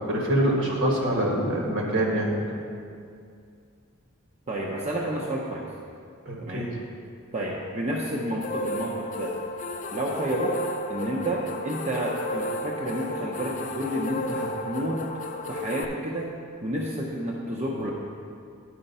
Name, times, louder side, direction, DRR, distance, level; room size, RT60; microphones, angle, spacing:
voice 1, 0.0-2.6 6.2-6.7, right 1 dB, 60° right, -1 dB, 1.6 m, -25 dB
voice 2, 4.5-5.7 6.4-6.7 7.3-9.4 9.9-10.6 10.9-15.0 15.5-16.3 16.6-17.9, right 1 dB, 30° right, -3 dB, 0.7 m, -30 dB
sound 1, 8.4-15.9, left 1 dB, 35° left, 0.4 m, -33 dB
10.0 x 5.1 x 5.4 m, 2.4 s
head